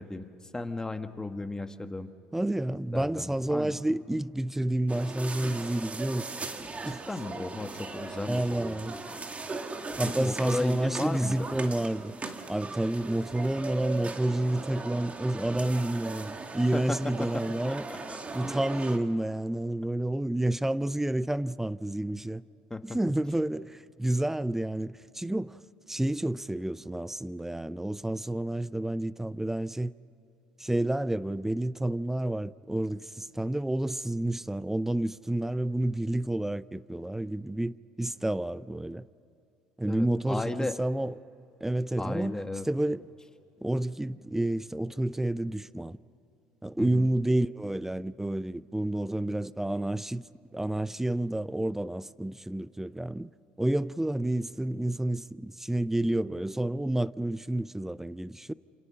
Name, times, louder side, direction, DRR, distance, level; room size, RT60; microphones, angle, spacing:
voice 1, 0.0-2.1 2.9-3.8 6.9-8.8 10.0-11.5 16.7-18.2 22.7-23.0 39.9-40.8 42.0-42.7 46.8-47.1, left 2 dB, 15° left, 1.5 m, -35 dB
voice 2, 2.3-6.3 6.8-7.0 8.3-9.0 10.0-12.1 12.5-17.8 18.3-22.4 22.9-25.6 25.9-29.9 30.6-39.0 39.8-41.1 41.6-42.4 42.7-43.0 43.6-46.0 46.6-50.2 50.5-53.3 53.6-58.5, right 1 dB, 5° right, 0.5 m, -29 dB
sound 1, 4.9-19.0, right 3 dB, 30° right, 2.1 m, -38 dB
28.0 x 28.0 x 5.7 m
hypercardioid pair, 70°, 5 cm